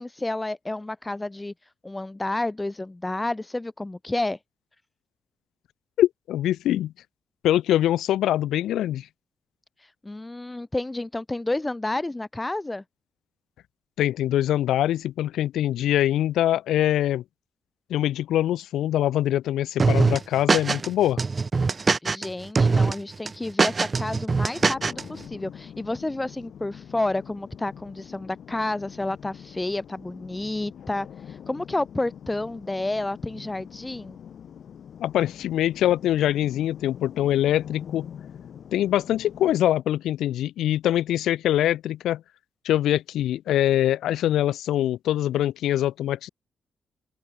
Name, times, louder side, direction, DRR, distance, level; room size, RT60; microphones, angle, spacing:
voice 1, 0.0-4.4 9.8-12.8 22.0-34.2, left 2 dB, 15° left, 0.7 m, -30 dB
voice 2, 6.0-6.9 7.4-9.1 14.0-17.2 17.9-21.2 35.0-38.1 38.7-42.2 42.6-46.3, left 12 dB, 90° left, 0.4 m, -23 dB
sound 1, 19.8-20.9 21.2-22.3 22.6-22.9 23.3-25.0, right 4 dB, 35° right, 0.7 m, -22 dB
sound 2, 24.6-39.6, left 8 dB, 70° left, 2.6 m, -44 dB
open air
cardioid pair, 80°, 0 cm